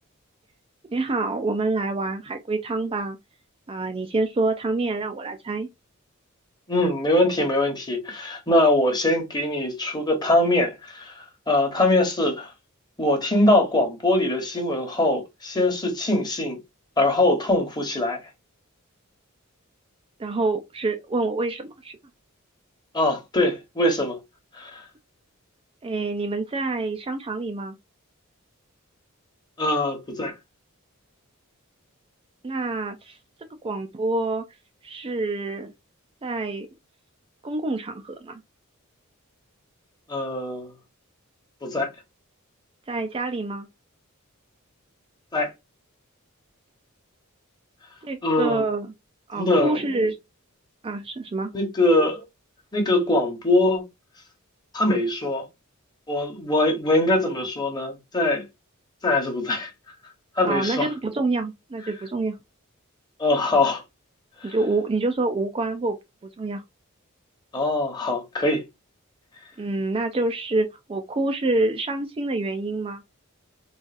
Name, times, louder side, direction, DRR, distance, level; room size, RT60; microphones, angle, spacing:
voice 1, 0.9-3.2 3.7-5.7 20.2-22.0 25.8-27.8 32.4-33.2 33.6-34.4 34.8-35.7 36.2-36.7 37.4-38.4 42.9-43.7 48.0-48.9 49.3-50.2 50.8-51.5 60.4-62.4 64.4-66.0 66.2-66.6 69.6-73.0, right 2 dB, 25° right, 0.4 m, -27 dB
voice 2, 6.7-12.5 13.0-16.6 17.0-18.2 22.9-24.2 24.5-24.8 29.6-30.3 40.1-40.7 41.6-41.9 45.3-45.5 48.2-48.6 49.4-49.9 51.5-52.2 52.7-53.8 54.7-55.4 56.1-58.4 59.0-59.7 60.4-60.9 63.2-63.8 64.4-64.5 67.5-68.6, left 1 dB, 20° left, 1.0 m, -22 dB
3.8 x 2.4 x 2.4 m
head